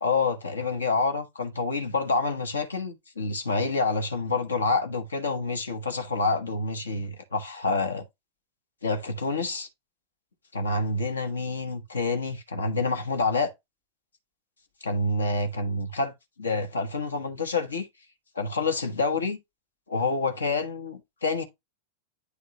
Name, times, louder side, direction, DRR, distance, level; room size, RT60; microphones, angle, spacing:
voice 1, 0.0-8.0 8.8-9.7 10.5-13.5 14.8-16.1 16.4-17.9 18.3-19.4 19.9-21.4, left 3 dB, 70° left, 1.1 m, -27 dB
9.6 x 3.6 x 2.9 m
figure-of-eight pair, 90°, 0 cm